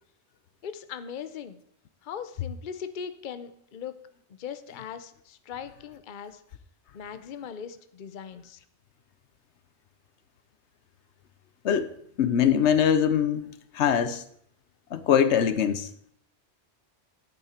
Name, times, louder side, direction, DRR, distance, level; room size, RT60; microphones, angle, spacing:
voice 1, 0.6-1.6 2.0-4.0 4.4-6.4 6.9-8.6, left 7 dB, 50° left, 11 dB, 0.8 m, -39 dB
voice 2, 12.2-13.5 13.7-14.2 14.9-15.9, left 8 dB, 75° left, 13 dB, 1.0 m, -22 dB
10.5 x 8.7 x 4.3 m, 0.67 s
omnidirectional pair, 1.2 m